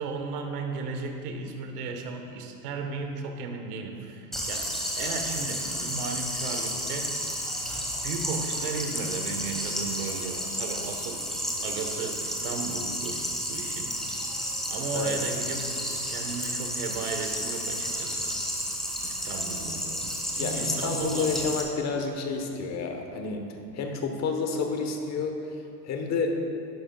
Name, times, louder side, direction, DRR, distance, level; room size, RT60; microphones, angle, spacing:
voice 1, 0.0-4.7 4.9-7.1 8.0-11.2 11.6-14.0 14.7-15.6 16.1-18.3 19.0-19.8 20.3-21.3, right 4 dB, 70° right, 4 dB, 1.4 m, -35 dB
sound 1, 4.3-21.6, equal, ahead, 1.3 m, -32 dB
voice 2, 20.4-23.4 23.7-26.4, left 4 dB, 35° left, 4 dB, 1.3 m, -30 dB
11.5 x 11.0 x 2.4 m, 2.7 s
hypercardioid pair, 110°, 49 cm